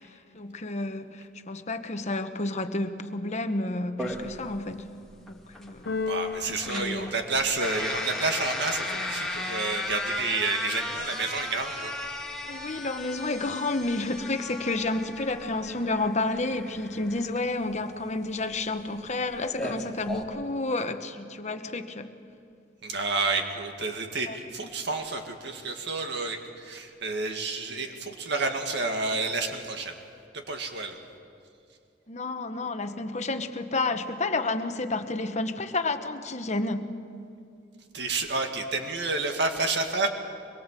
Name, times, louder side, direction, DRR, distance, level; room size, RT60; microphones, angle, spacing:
voice 1, 0.3-4.8 5.3-5.8 6.5-7.1 12.5-22.1 24.3-24.4 32.1-36.9, left 2 dB, 40° left, 8 dB, 1.1 m, -30 dB
sound 1, 4.0-20.2, left 2 dB, 5° left, 2.3 m, -36 dB
Keyboard (musical), 5.9-8.0, left 5 dB, 60° left, 0.9 m, -35 dB
voice 2, 6.1-11.9 22.8-29.9 30.3-31.0 37.9-40.1, right 3 dB, 65° right, 4 dB, 2.1 m, -30 dB
24.5 x 22.0 x 7.6 m, 2.4 s
head